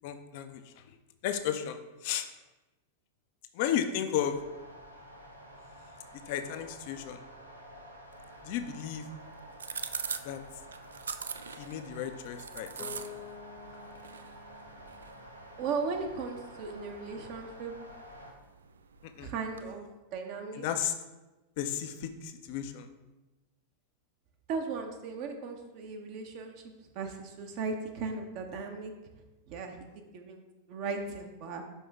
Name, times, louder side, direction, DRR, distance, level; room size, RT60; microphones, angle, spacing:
voice 1, 0.0-1.0 1.2-2.3 3.5-4.4 6.1-7.2 8.4-9.1 10.2-10.4 11.6-13.2 19.2-19.3 20.5-20.9 21.6-22.9, left 10 dB, 50° left, 8 dB, 0.6 m, -34 dB
sound 1, 4.1-18.3, equal, 85° right, 0.9 m, -50 dB
sound 2, 8.1-19.7, right 6 dB, 70° right, 0.3 m, -45 dB
Bass guitar, 12.8-16.7, left 6 dB, 15° left, 0.7 m, -50 dB
voice 2, 15.6-17.7 19.2-19.9 20.1-20.6 24.5-26.6 26.9-28.9 29.5-29.9 30.1-30.4 30.7-31.6, right 4 dB, 45° right, 3 dB, 0.8 m, -36 dB
5.6 x 5.3 x 3.5 m, 1.1 s
figure-of-eight pair, 90°, 0 cm